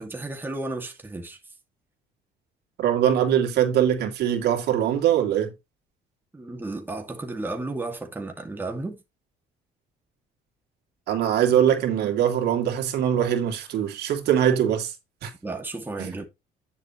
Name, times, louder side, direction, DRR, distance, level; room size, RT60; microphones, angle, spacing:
voice 1, 0.0-1.4 6.3-9.0 15.4-16.2, right 2 dB, 10° right, 2.3 m, -33 dB
voice 2, 2.8-5.5 11.1-14.9 15.2-15.3 16.0-16.2, right 10 dB, 70° right, 2.7 m, -22 dB
9.7 x 7.4 x 3.1 m
cardioid pair, 110°, 17 cm